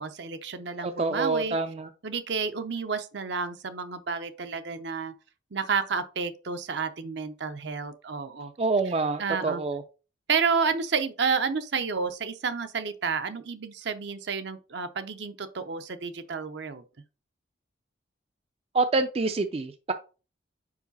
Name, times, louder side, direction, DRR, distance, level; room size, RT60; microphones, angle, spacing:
voice 1, 0.0-1.6 2.0-5.1 5.5-8.5 9.2-9.6 10.3-16.8, right 5 dB, 65° right, 0.6 m, -30 dB
voice 2, 0.8-1.9 8.6-9.8 18.7-19.9, right 3 dB, 30° right, 0.3 m, -26 dB
4.9 x 4.8 x 4.0 m
head